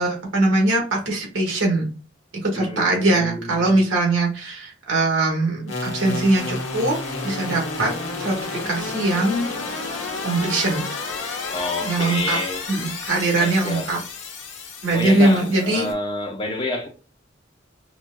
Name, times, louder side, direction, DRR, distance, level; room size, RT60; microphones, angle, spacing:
voice 1, 0.0-1.9 2.4-7.0 7.2-7.9 8.2-9.8 10.2-10.8 11.8-12.4 12.7-14.0 14.8-15.9, right 2 dB, 85° right, 1.6 m, -21 dB
voice 2, 2.6-3.8 11.5-12.7 13.4-13.9 14.9-16.9, left 2 dB, 25° left, 0.7 m, -28 dB
sound 1, 5.7-15.9, left 3 dB, 75° left, 1.1 m, -31 dB
5.9 x 2.5 x 2.2 m
head